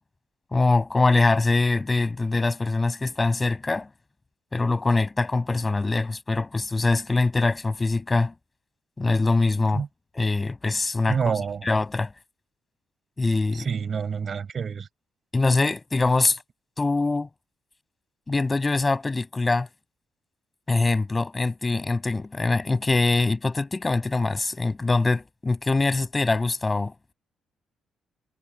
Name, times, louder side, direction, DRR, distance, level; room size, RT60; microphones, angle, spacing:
voice 1, 0.5-3.9 4.5-8.3 9.0-9.8 10.2-11.4 11.7-12.1 13.2-13.7 15.3-16.4 16.8-17.3 18.3-19.7 20.7-27.1, left 3 dB, 20° left, 7.0 m, -23 dB
voice 2, 11.1-11.7 13.5-14.9, right 6 dB, 45° right, 5.7 m, -28 dB
cardioid pair, 90°, 0 cm